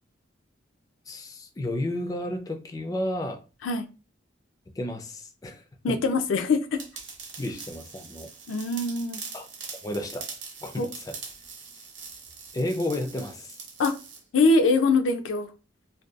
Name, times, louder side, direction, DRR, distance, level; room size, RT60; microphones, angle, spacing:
voice 1, 1.1-3.4 4.7-6.0 7.4-8.3 9.3-9.5 9.8-10.3 10.6-11.2 12.5-13.6, left 1 dB, 20° left, 0.3 m, -32 dB
voice 2, 5.8-6.8 8.5-9.2 10.8-10.9 13.8-13.9 14.3-15.5, left 3 dB, 90° left, 0.4 m, -23 dB
sound 1, 6.8-14.2, right 5 dB, 75° right, 0.7 m, -42 dB
2.6 x 2.2 x 2.3 m
head